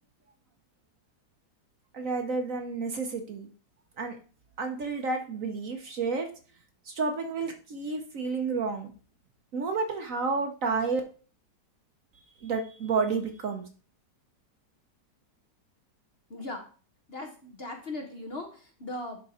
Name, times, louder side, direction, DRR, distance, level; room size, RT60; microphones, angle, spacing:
voice 1, 1.9-3.5 4.0-4.2 4.6-6.3 6.9-8.9 9.5-11.0 12.4-13.6, right 4 dB, 55° right, 5 dB, 1.1 m, -30 dB
voice 2, 16.3-16.6 17.1-19.2, left 2 dB, 40° left, 3 dB, 1.0 m, -38 dB
10.5 x 3.9 x 4.2 m, 0.39 s
omnidirectional pair, 1.9 m